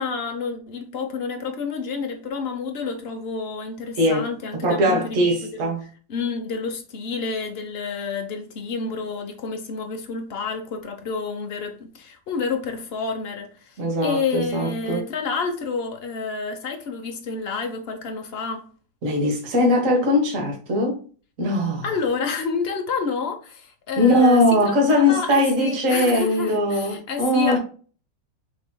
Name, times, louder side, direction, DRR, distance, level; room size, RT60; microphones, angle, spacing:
voice 1, 0.0-5.7 6.1-18.7 21.8-27.6, left 5 dB, 45° left, 0.9 m, -29 dB
voice 2, 4.0-4.3 4.6-5.9 13.8-15.1 19.0-21.0 21.4-21.8 24.0-27.6, left 1 dB, 45° right, 1.6 m, -20 dB
6.2 x 3.2 x 2.2 m
omnidirectional pair, 2.0 m